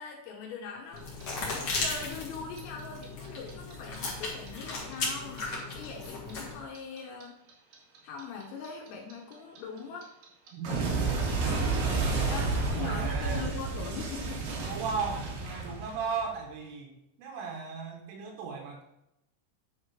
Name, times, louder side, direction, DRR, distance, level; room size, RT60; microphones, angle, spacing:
voice 1, 0.0-7.4 8.0-10.1 11.3-14.4, left 5 dB, 80° left, 0 dB, 3.6 m, -41 dB
sound 1, 0.9-6.6, left 3 dB, 60° left, 1.6 m, -36 dB
Clock, 1.0-4.0 4.2-7.2 7.5-16.3, right 4 dB, 60° right, 2.5 m, -31 dB
voice 2, 10.5-11.3 12.1-13.5 14.6-16.9 17.2-18.8, right 5 dB, 75° right, 1 dB, 3.8 m, -36 dB
9.8 x 5.0 x 4.9 m, 0.85 s
omnidirectional pair, 6.0 m